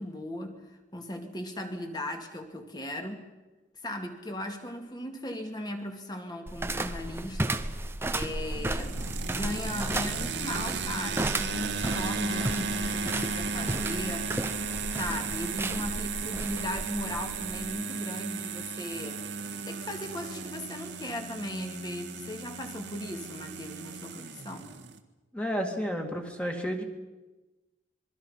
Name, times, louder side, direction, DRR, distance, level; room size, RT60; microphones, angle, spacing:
voice 1, 0.0-3.3 3.8-14.3 14.9-19.2 19.7-24.7, left 1 dB, 20° left, 4 dB, 2.3 m, -38 dB
sound 1, 6.5-17.7, right 1 dB, 15° right, 0.8 m, -34 dB
sound 2, 8.2-25.0, right 4 dB, 75° right, 1.6 m, -35 dB
voice 2, 25.3-26.8, equal, 5° left, 2 dB, 2.3 m, -31 dB
27.0 x 22.5 x 5.7 m, 1.1 s
head